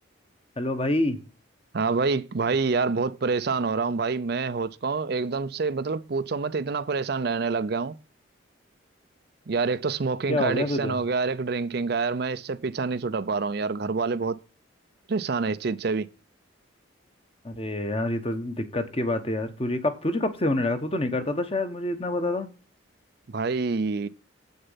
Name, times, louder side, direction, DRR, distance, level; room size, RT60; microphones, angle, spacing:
voice 1, 0.6-1.2 10.3-11.0 17.4-22.5, left 1 dB, 30° left, 1.1 m, -27 dB
voice 2, 1.7-8.0 9.5-14.4 15.1-16.1 23.3-24.1, right 4 dB, 50° right, 0.5 m, -27 dB
8.0 x 6.6 x 5.6 m
head